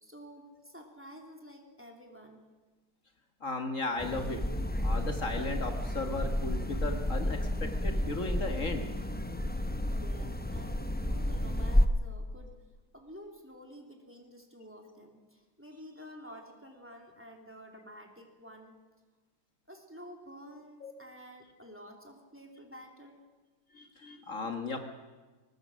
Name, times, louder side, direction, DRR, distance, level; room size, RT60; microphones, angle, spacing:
voice 1, 0.0-2.5 9.5-12.6 12.9-18.8 19.7-23.2, equal, 10° right, 2 dB, 3.1 m, -50 dB
voice 2, 3.4-4.4 4.8-8.8 20.8-20.9 23.7-24.8, left 3 dB, 55° left, 5 dB, 1.9 m, -36 dB
sound 1, 4.0-11.9, left 1 dB, 10° left, 0.6 m, -31 dB
23.5 x 19.5 x 6.2 m, 1.3 s
omnidirectional pair, 1.7 m